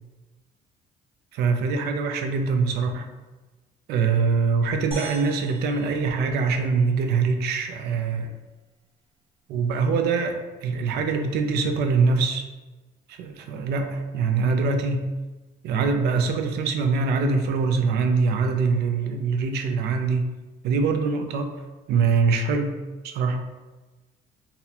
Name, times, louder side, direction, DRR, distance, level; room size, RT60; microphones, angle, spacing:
voice 1, 1.3-3.1 3.9-8.3 9.5-12.4 13.1-15.1 15.6-20.3 20.6-21.5 21.9-23.4, right 4 dB, 75° right, 6 dB, 0.5 m, -23 dB
sound 1, 4.9-7.3, right 2 dB, 30° right, 1.4 m, -41 dB
4.0 x 2.1 x 2.8 m, 1.2 s
cardioid pair, 110°, 17 cm